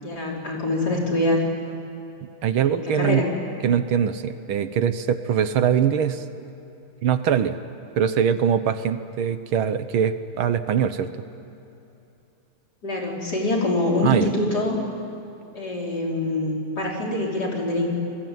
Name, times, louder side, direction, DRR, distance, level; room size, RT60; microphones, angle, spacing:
voice 1, 0.0-1.5 2.5-3.3 12.8-14.8 15.5-17.9, left 2 dB, 45° left, -2 dB, 5.2 m, -25 dB
voice 2, 2.4-3.2 3.6-6.2 7.0-7.6 8.0-11.1 14.0-14.3, right 8 dB, 70° right, 11 dB, 1.8 m, -22 dB
30.0 x 21.0 x 9.4 m, 2.9 s
omnidirectional pair, 2.4 m